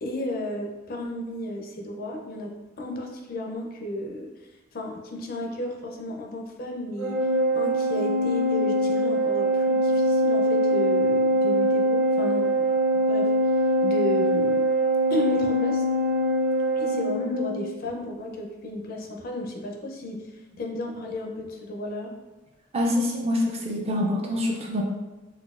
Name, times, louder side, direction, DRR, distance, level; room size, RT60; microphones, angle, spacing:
voice 1, 0.0-4.3 4.7-7.2 7.5-12.7 13.1-13.5 13.8-14.7 15.1-15.8 16.8-22.1, left 1 dB, 45° left, 1 dB, 0.4 m, -33 dB
Organ, 7.0-17.7, right 1 dB, 90° right, 0.6 m, -23 dB
voice 2, 22.7-24.8, left 1 dB, 30° right, -1 dB, 0.4 m, -25 dB
4.0 x 2.2 x 2.3 m, 1.1 s
head